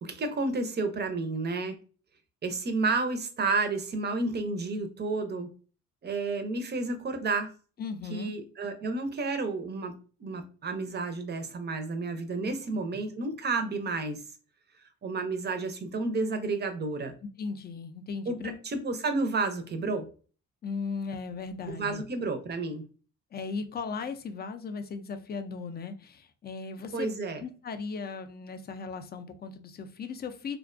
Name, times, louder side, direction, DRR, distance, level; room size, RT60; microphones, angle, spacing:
voice 1, 0.0-1.8 2.4-5.5 6.0-7.5 8.1-14.2 15.0-17.1 18.3-18.4 18.6-20.1 21.7-22.8 26.9-27.4, right 3 dB, 35° right, 0.5 m, -31 dB
voice 2, 7.8-8.3 12.4-12.5 17.4-18.6 20.6-22.0 23.3-27.1 27.4-30.6, left 5 dB, 35° left, 0.4 m, -37 dB
2.4 x 2.1 x 2.4 m
cardioid pair, 90°, 30 cm